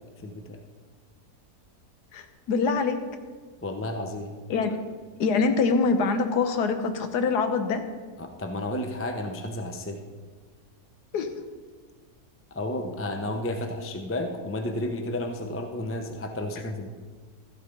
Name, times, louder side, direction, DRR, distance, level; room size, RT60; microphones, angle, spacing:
voice 1, 0.2-0.6 3.6-4.3 8.2-10.0 12.5-16.9, left 1 dB, 15° left, 5 dB, 0.6 m, -32 dB
voice 2, 2.1-3.0 4.5-4.8 5.2-7.8 11.1-11.3, left 4 dB, 90° left, 8 dB, 1.5 m, -24 dB
13.5 x 8.1 x 5.2 m, 1.5 s
omnidirectional pair, 1.7 m